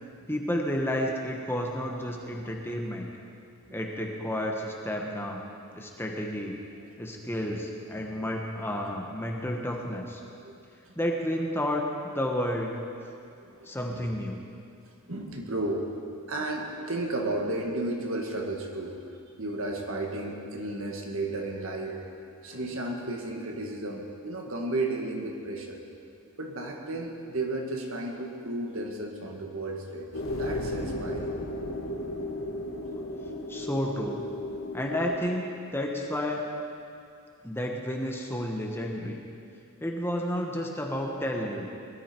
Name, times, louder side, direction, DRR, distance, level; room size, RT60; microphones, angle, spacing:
voice 1, 0.3-3.1 3.7-5.4 5.7-6.6 7.0-10.2 11.0-12.7 13.6-14.4 33.5-34.2 34.7-35.4 35.7-36.5 37.4-39.2 39.8-41.7, equal, 10° left, 0 dB, 1.2 m, -31 dB
voice 2, 13.4-14.0 15.1-15.9 16.3-22.1 22.4-25.8 26.4-30.1 30.4-31.3 34.7-34.8 41.5-41.6, right 2 dB, 65° right, 1 dB, 1.8 m, -33 dB
sound 1, 30.1-35.1, left 1 dB, 60° left, 1.8 m, -34 dB
21.0 x 13.0 x 4.5 m, 2.5 s
head